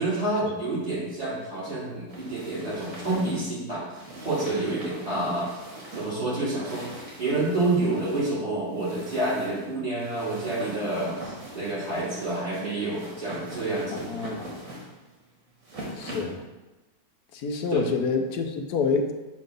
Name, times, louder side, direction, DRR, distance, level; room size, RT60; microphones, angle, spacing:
voice 1, 0.0-3.8 4.2-5.5 5.9-14.1 17.7-17.8, right 2 dB, 25° right, -9 dB, 2.3 m, -28 dB
sound 1, 2.1-16.4, right 1 dB, 65° right, 2.0 m, -42 dB
voice 2, 14.1-14.5 16.0-16.4 17.3-19.1, left 4 dB, 85° left, 5 dB, 1.2 m, -27 dB
7.5 x 2.7 x 5.2 m, 1.1 s
omnidirectional pair, 1.6 m